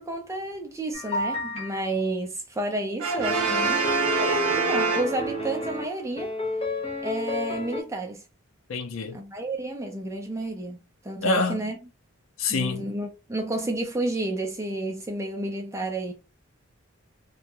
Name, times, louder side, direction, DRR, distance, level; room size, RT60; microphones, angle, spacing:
voice 1, 0.0-3.9 4.2-6.3 7.0-8.2 9.1-10.8 11.0-11.8 12.5-16.1, right 1 dB, 15° right, 0.4 m, -31 dB
sound 1, 0.9-1.8 3.2-5.8 6.2-7.8, left 1 dB, 25° left, 0.6 m, -31 dB
Brass instrument, 3.0-5.7, right 4 dB, 85° right, 0.5 m, -26 dB
voice 2, 8.7-9.2 11.2-11.6 12.4-12.9, left 3 dB, 65° left, 0.5 m, -26 dB
2.3 x 2.1 x 2.8 m
head